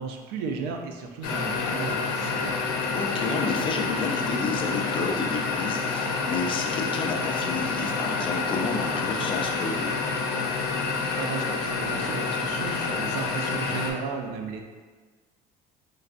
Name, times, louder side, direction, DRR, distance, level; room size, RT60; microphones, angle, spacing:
voice 1, 0.0-2.5 11.2-14.6, right 5 dB, 85° right, 3 dB, 0.5 m, -34 dB
sound 1, 1.2-13.9, left 4 dB, 75° left, 0.6 m, -28 dB
voice 2, 2.9-10.0, left 4 dB, 35° left, 2 dB, 0.4 m, -30 dB
3.9 x 3.2 x 2.5 m, 1.4 s
cardioid pair, 145°, 16 cm